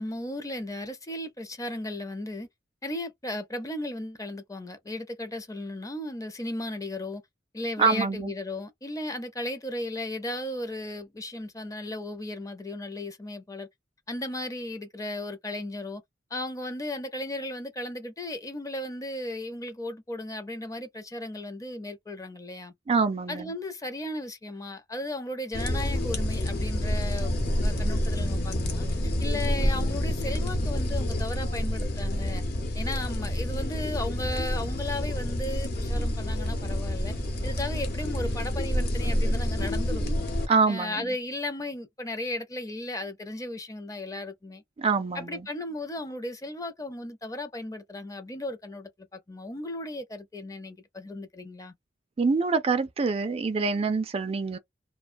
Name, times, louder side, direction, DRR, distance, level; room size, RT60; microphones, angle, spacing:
voice 1, 0.0-2.5 2.8-7.2 7.5-13.7 14.1-16.0 16.3-22.7 23.3-27.3 27.6-28.9 29.2-32.4 32.7-37.1 37.4-44.6 45.1-51.7, left 1 dB, 20° left, 0.5 m, -35 dB
voice 2, 7.8-8.3 22.9-23.5 40.5-41.1 44.8-45.5 52.2-54.6, right 4 dB, 35° right, 0.3 m, -25 dB
sound 1, 25.5-40.4, left 1 dB, 60° left, 0.9 m, -28 dB
2.4 x 2.1 x 2.5 m
head